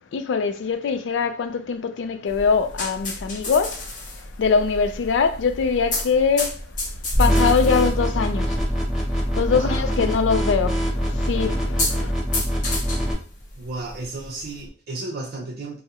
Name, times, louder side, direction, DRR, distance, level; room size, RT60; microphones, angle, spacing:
voice 1, 0.1-3.9 4.4-6.6 7.2-8.6 9.4-12.1, left 5 dB, 80° left, 0.4 m, -23 dB
sound 1, 2.3-14.7, left 2 dB, 45° left, 0.9 m, -33 dB
sound 2, 7.1-13.1, equal, 5° right, 0.7 m, -23 dB
voice 2, 9.4-10.0 13.6-15.8, right 2 dB, 55° right, 0.5 m, -33 dB
3.5 x 2.0 x 2.7 m
head